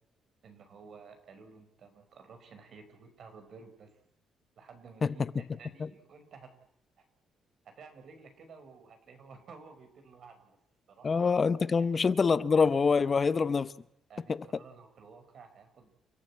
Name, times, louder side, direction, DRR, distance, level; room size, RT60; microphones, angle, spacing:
voice 1, 0.4-4.0 4.6-6.5 7.0-7.1 7.6-10.6 10.9-11.2 11.9-12.0 13.1-13.2 14.1-15.9, right 5 dB, 60° right, 5.1 m, -53 dB
voice 2, 11.0-13.7 14.3-14.4, left 5 dB, 35° left, 0.8 m, -25 dB
29.5 x 13.5 x 8.5 m
cardioid pair, 90°, 0 cm